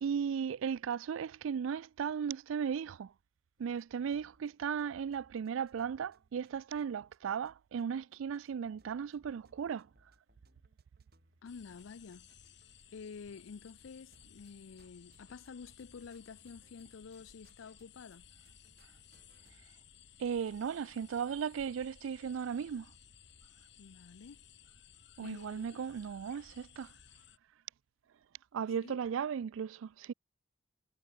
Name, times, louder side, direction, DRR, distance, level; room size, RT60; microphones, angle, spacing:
voice 1, 0.0-3.1 3.6-9.9 20.2-22.9 25.2-26.9 28.5-30.1, right 7 dB, 80° right, 0.3 m, -36 dB
sound 1, 3.6-7.2 7.5-7.6 7.8-13.2 13.4-13.8 14.1-18.2 18.5-19.8, right 2 dB, 50° right, 5.4 m, -70 dB
voice 2, 11.4-12.3 12.9-18.3 23.8-24.4 25.2-25.8 28.8-29.0, left 5 dB, 85° left, 0.5 m, -50 dB
sound 2, 11.5-27.4, left 8 dB, 60° left, 3.4 m, -59 dB
head